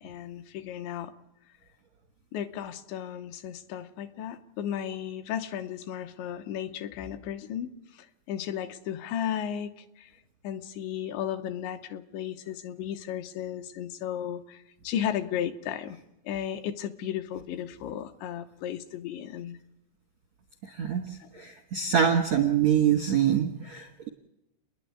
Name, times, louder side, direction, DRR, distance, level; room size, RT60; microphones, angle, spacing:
voice 1, 0.0-1.1 2.3-10.1 10.4-16.0 16.3-19.6 21.2-21.3, left 10 dB, 80° left, 8 dB, 3.0 m, -34 dB
voice 2, 20.7-21.0 21.3-24.1, right 8 dB, 75° right, 2 dB, 1.5 m, -25 dB
28.5 x 10.5 x 9.4 m, 0.89 s
omnidirectional pair, 5.4 m